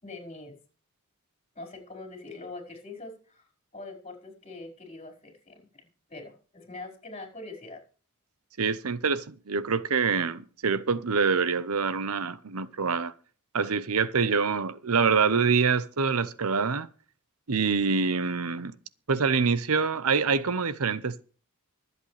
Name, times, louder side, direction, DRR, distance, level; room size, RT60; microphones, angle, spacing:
voice 1, 0.0-0.6 1.5-3.4 3.7-7.8, left 2 dB, 30° left, 5.0 m, -43 dB
voice 2, 8.6-13.1 13.5-16.9 17.5-18.8 19.1-21.2, right 5 dB, 85° right, 0.8 m, -25 dB
24.5 x 8.2 x 3.3 m
head